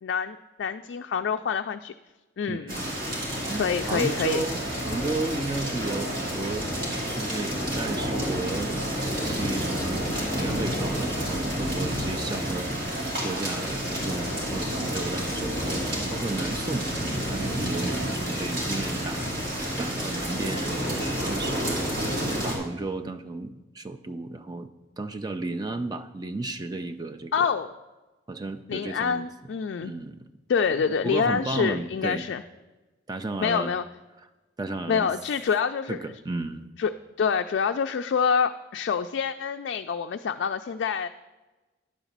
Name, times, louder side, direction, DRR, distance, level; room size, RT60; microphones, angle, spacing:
voice 1, 0.0-1.9 2.4-2.8 3.5-4.4 27.3-27.7 28.7-29.9 30.5-32.4 33.4-33.8 34.9-36.0 36.8-36.9 37.2-41.1, left 6 dB, 65° left, 6 dB, 0.3 m, -26 dB
voice 2, 2.5-3.0 3.5-3.6 3.9-6.7 7.1-16.9 17.2-19.3 19.8-22.0 22.4-24.7 25.0-27.5 28.3-29.3 29.8-30.2 30.7-32.2 33.1-33.7 34.6-35.1 35.9-36.7, right 2 dB, 20° right, 8 dB, 0.4 m, -33 dB
sound 1, 2.7-22.6, equal, 50° right, 2.6 m, -29 dB
10.5 x 4.0 x 7.3 m, 1.2 s
head